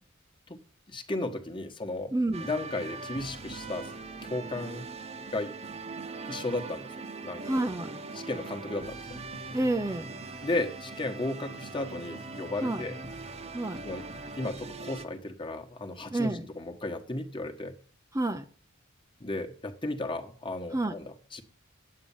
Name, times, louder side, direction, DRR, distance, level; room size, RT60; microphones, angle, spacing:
voice 1, 0.9-3.9 4.2-4.9 5.3-5.5 6.2-6.9 7.2-7.4 8.1-9.6 10.4-13.0 13.8-14.1 14.4-17.8 19.2-21.4, left 2 dB, 25° left, 5 dB, 1.3 m, -34 dB
voice 2, 2.1-2.5 7.5-8.0 9.5-10.2 12.6-12.8 13.5-13.8 16.1-16.5 18.1-18.4 20.7-20.9, right 2 dB, 15° right, 7 dB, 0.6 m, -29 dB
sound 1, 2.3-15.1, right 3 dB, 30° right, 1.0 m, -41 dB
9.7 x 8.7 x 7.1 m, 0.43 s
head